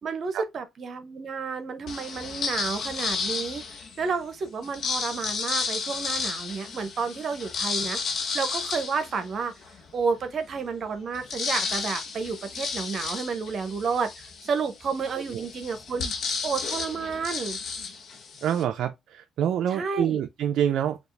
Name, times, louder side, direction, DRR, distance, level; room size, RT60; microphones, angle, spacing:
voice 1, 0.0-3.6 4.0-9.5 9.9-16.1 16.4-17.6 19.7-20.2, right 5 dB, 55° right, 0.8 m, -31 dB
sound 1, 1.9-4.0 4.6-9.8 10.3-10.4 10.6-18.6, left 5 dB, 65° left, 0.8 m, -32 dB
voice 2, 18.4-21.0, right 9 dB, 75° right, 0.3 m, -26 dB
4.4 x 2.4 x 3.2 m
cardioid pair, 90°, 0 cm